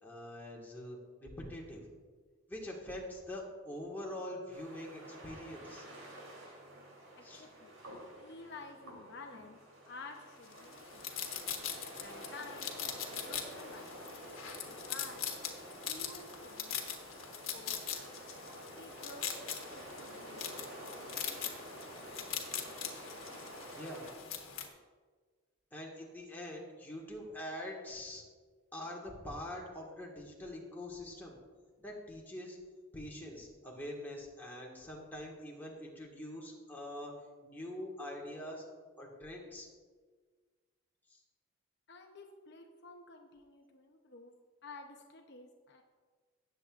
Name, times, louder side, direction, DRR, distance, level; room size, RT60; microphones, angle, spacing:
voice 1, 0.0-1.8 2.5-5.8 7.2-7.4 22.8-23.1 23.7-24.1 25.7-28.2 28.7-31.4 31.8-32.6 32.9-37.1 37.4-38.6 39.0-39.7 41.1-41.2, left 1 dB, 10° left, -3 dB, 1.7 m, -44 dB
sound 1, 4.5-24.1, right 1 dB, 80° right, 3.2 m, -50 dB
voice 2, 7.2-9.6 9.9-11.3 12.0-14.0 14.7-15.2 15.8-16.8 17.0-18.1 18.4-19.3 19.7-20.7 41.9-44.3 44.6-45.8, left 3 dB, 55° left, 3 dB, 0.8 m, -52 dB
sound 2, 10.5-24.7, left 8 dB, 80° left, 1.3 m, -42 dB
18.0 x 7.7 x 2.5 m, 1.5 s
head